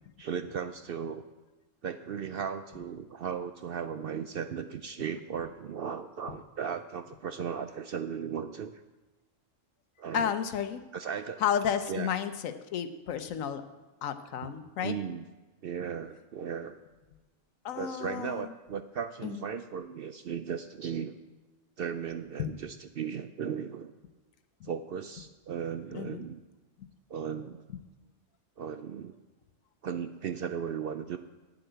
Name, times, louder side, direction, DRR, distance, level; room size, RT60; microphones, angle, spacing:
voice 1, 0.2-1.2 1.8-8.7 10.0-10.3 10.9-11.4 11.9-12.1 14.4-14.6 14.8-15.3 15.6-16.8 17.8-21.2 21.8-23.9 24.6-26.4 27.1-27.6 28.6-29.1 29.8-31.2, right 7 dB, 65° right, 9 dB, 0.6 m, -36 dB
voice 2, 10.1-10.8 11.4-13.6 14.0-15.0 17.6-18.5 19.2-19.4 22.4-22.5 24.6-24.7 25.9-26.3, left 8 dB, 85° left, 10 dB, 1.2 m, -32 dB
9.4 x 7.8 x 7.9 m, 1.2 s
omnidirectional pair, 1.4 m